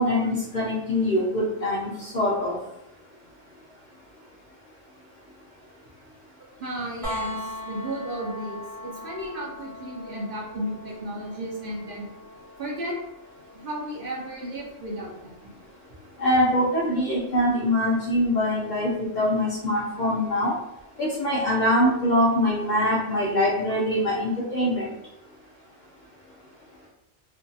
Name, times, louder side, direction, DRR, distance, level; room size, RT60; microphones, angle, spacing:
voice 1, 0.0-2.6 16.2-20.5 21.0-24.9, left 1 dB, 55° left, -6 dB, 0.5 m, -23 dB
voice 2, 6.6-12.1 12.6-12.9 13.6-15.5, right 1 dB, 55° right, -4 dB, 0.7 m, -34 dB
sound 1, 7.0-18.8 20.8-20.9, left 1 dB, ahead, 0.6 m, -42 dB
2.5 x 2.3 x 2.6 m, 0.88 s
omnidirectional pair, 1.2 m